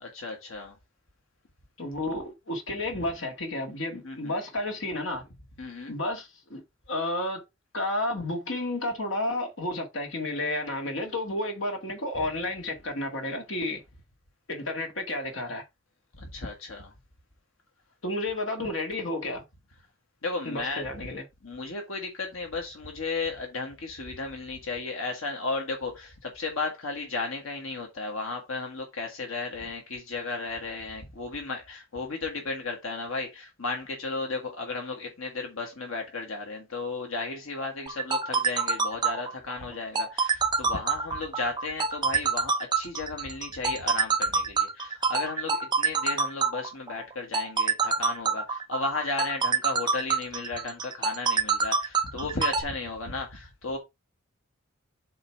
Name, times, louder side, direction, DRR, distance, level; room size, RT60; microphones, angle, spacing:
voice 1, 0.0-0.8 4.0-4.3 5.6-5.9 16.1-16.9 20.2-20.8 21.4-53.8, left 3 dB, 80° left, 1.7 m, -34 dB
voice 2, 1.8-5.3 5.9-7.4 7.7-13.8 14.5-15.6 18.0-19.4 20.4-21.2, left 1 dB, 65° left, 2.0 m, -31 dB
sound 1, 37.9-52.6, right 5 dB, 20° right, 0.6 m, -26 dB
7.9 x 3.3 x 4.6 m
head